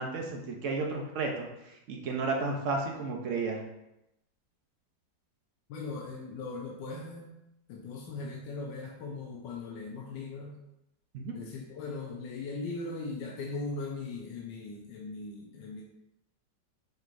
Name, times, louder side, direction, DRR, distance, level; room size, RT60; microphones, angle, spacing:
voice 1, 0.0-1.5 1.9-3.6 11.1-11.3, right 3 dB, 60° right, 1 dB, 0.8 m, -32 dB
voice 2, 5.7-7.3 7.7-10.5 11.3-15.8, left 3 dB, 80° left, -2 dB, 1.3 m, -39 dB
6.8 x 3.1 x 2.5 m, 0.87 s
omnidirectional pair, 1.9 m